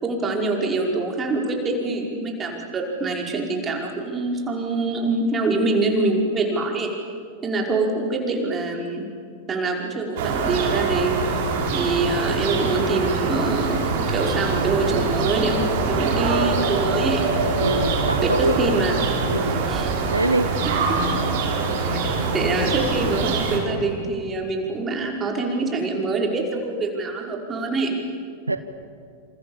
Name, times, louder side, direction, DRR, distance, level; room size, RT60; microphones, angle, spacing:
voice 1, 0.0-6.9 7.4-9.0 9.5-11.3 11.7-13.8 14.1-17.3 18.2-18.9 19.7-19.9 21.9-22.0 22.3-28.0, right 3 dB, 20° right, 1 dB, 5.3 m, -25 dB
sound 1, 10.2-23.6, right 4 dB, 50° right, 5.4 m, -24 dB
voice 2, 17.6-18.7 19.3-19.6 20.1-20.5 28.5-28.6, right 2 dB, 85° right, 11 dB, 1.1 m, -23 dB
28.0 x 28.0 x 7.4 m, 2.2 s
figure-of-eight pair, 90°, 0 cm